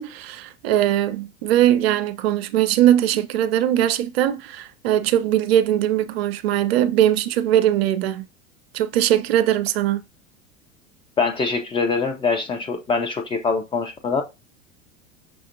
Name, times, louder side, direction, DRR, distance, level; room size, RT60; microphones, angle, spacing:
voice 1, 0.0-8.3 8.7-10.0, right 11 dB, 55° right, 0.5 m, -20 dB
voice 2, 11.2-14.2, left 4 dB, 15° left, 0.4 m, -23 dB
5.9 x 2.5 x 2.6 m
figure-of-eight pair, 80°, 39 cm